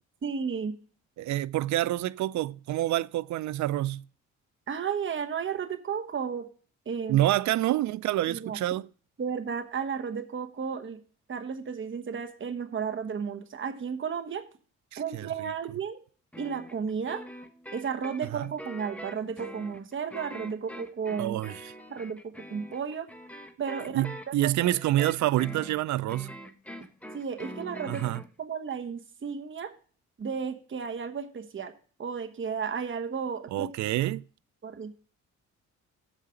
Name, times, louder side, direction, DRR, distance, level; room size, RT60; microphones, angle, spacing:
voice 1, 0.2-0.7 4.7-6.5 6.9-7.2 8.3-8.6 9.2-11.0 11.3-14.4 15.0-16.0 16.4-17.2 17.7-21.4 21.9-23.1 23.6-24.5 27.1-28.1 28.4-29.7 30.2-31.7 32.0-33.7 34.6-34.9, right 6 dB, 40° right, 1.1 m, -33 dB
voice 2, 1.2-4.0 7.1-8.9 14.9-15.5 18.3-18.5 21.2-21.7 23.9-26.3 27.9-28.2 33.5-34.2, right 14 dB, 70° right, 0.4 m, -27 dB
sound 1, 16.3-28.3, equal, 5° left, 1.2 m, -44 dB
7.4 x 5.0 x 6.9 m
cardioid pair, 70°, 30 cm